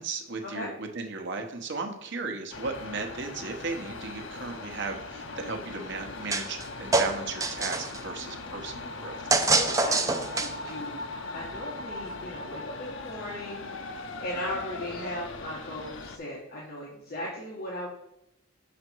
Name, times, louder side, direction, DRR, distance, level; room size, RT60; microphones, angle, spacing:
voice 1, 0.0-9.2, right 4 dB, 60° right, 4 dB, 1.0 m, -36 dB
sound 1, 2.5-16.2, left 3 dB, 65° left, 0.7 m, -39 dB
sound 2, 6.3-6.7 6.9-8.0 9.3-10.7, right 3 dB, 15° right, 0.5 m, -25 dB
voice 2, 9.3-17.9, left 1 dB, 50° left, -5 dB, 1.5 m, -38 dB
6.5 x 5.1 x 4.5 m, 0.81 s
head